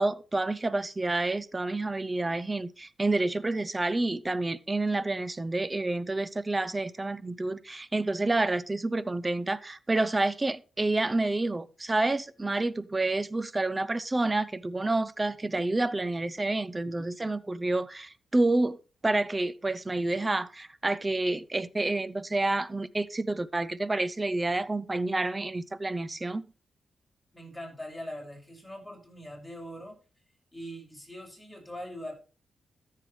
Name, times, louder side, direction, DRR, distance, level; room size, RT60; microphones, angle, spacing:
voice 1, 0.0-18.8 19.0-26.5, right 2 dB, 25° right, 0.7 m, -29 dB
voice 2, 27.3-30.0 30.5-32.1, equal, 5° left, 6.3 m, -42 dB
14.0 x 7.5 x 3.2 m
cardioid pair, 60°, 0 cm